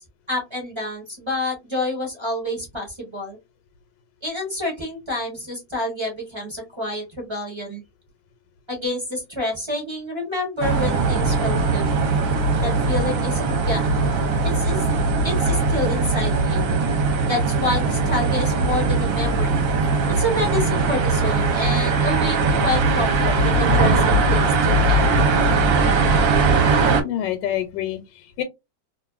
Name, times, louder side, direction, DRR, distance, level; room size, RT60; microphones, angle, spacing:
voice 1, 0.3-3.4 4.2-7.8 8.7-11.9 12.6-14.0 14.4-14.8 15.2-16.7 17.3-19.6 20.2-25.2, left 1 dB, 25° right, 0.7 m, -28 dB
sound 1, 10.6-27.0, right 3 dB, 60° right, 1.0 m, -20 dB
voice 2, 27.0-28.4, left 11 dB, 80° left, 1.2 m, -27 dB
2.6 x 2.6 x 2.3 m
omnidirectional pair, 1.9 m